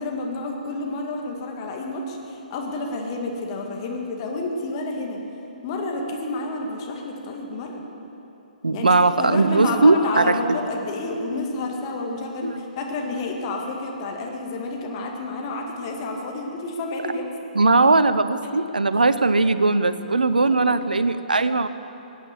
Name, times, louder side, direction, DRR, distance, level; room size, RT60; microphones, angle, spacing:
voice 1, 0.0-5.2 5.6-7.8 8.7-17.3 20.7-20.8, left 2 dB, 35° left, 1 dB, 2.0 m, -30 dB
voice 2, 8.6-10.4 12.4-12.6 17.5-21.7, right 3 dB, 75° right, 12 dB, 0.7 m, -19 dB
17.0 x 9.4 x 7.3 m, 3.0 s
figure-of-eight pair, 125°, 5 cm